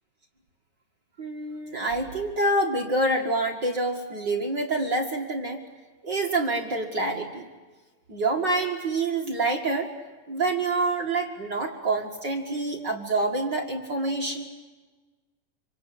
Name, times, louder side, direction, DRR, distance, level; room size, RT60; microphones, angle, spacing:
voice 1, 1.2-5.6 6.0-7.5 8.1-9.9 10.3-14.5, right 2 dB, 40° right, 2 dB, 2.0 m, -27 dB
27.0 x 26.0 x 8.5 m, 1.3 s
omnidirectional pair, 4.1 m